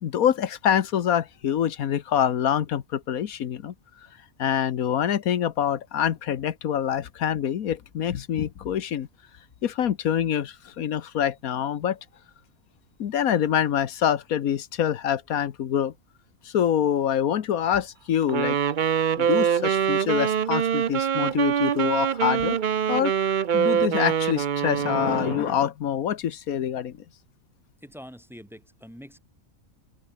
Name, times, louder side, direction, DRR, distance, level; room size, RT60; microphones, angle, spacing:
voice 1, 0.0-3.7 4.4-9.1 9.6-12.0 13.0-15.9 16.4-18.6 19.2-22.6 22.9-27.0, left 9 dB, 90° left, 1.5 m, -25 dB
Wind instrument woodwind instrument, 18.3-25.5, right 8 dB, 45° right, 0.7 m, -24 dB
voice 2, 27.8-29.2, equal, ahead, 5.2 m, -44 dB
open air
omnidirectional pair, 1.5 m